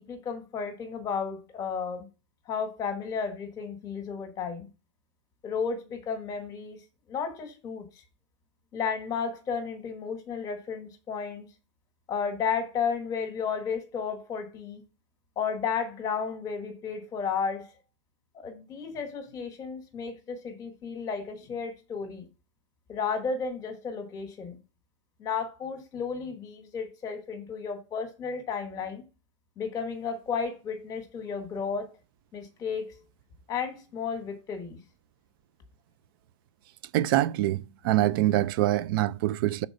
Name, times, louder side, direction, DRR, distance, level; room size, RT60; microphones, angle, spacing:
voice 1, 0.0-2.1 2.5-4.7 5.4-6.8 7.1-7.9 8.7-11.5 12.1-14.8 15.4-17.7 18.3-22.3 22.9-24.6 25.2-29.0 29.6-31.9 32.3-33.0 33.5-34.8, left 6 dB, 20° left, 1.3 m, -33 dB
voice 2, 36.9-39.7, right 14 dB, 45° right, 0.4 m, -25 dB
6.6 x 4.1 x 4.8 m
supercardioid pair, 160°, 16 cm